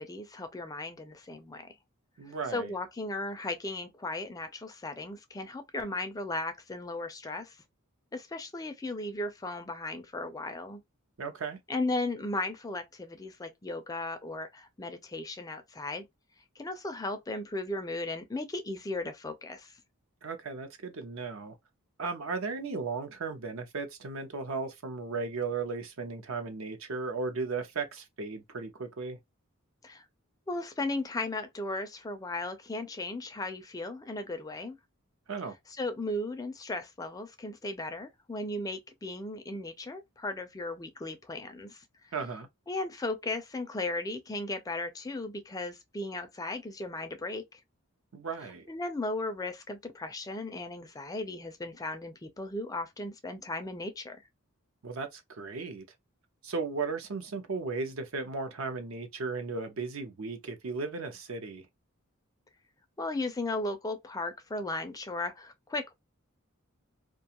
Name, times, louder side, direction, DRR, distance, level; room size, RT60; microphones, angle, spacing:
voice 1, 0.0-1.7 2.3-7.6 8.1-10.8 11.7-16.1 16.6-19.8 29.8-30.1 30.5-34.8 35.8-41.8 42.7-47.6 48.7-54.2 63.0-65.9, left 2 dB, 15° left, 0.4 m, -36 dB
voice 2, 2.2-2.7 11.2-11.6 20.2-21.6 22.0-29.2 35.3-35.6 42.1-42.5 48.1-48.7 54.8-55.8 56.4-61.7, right 4 dB, 70° right, 0.6 m, -36 dB
2.4 x 2.3 x 2.8 m
head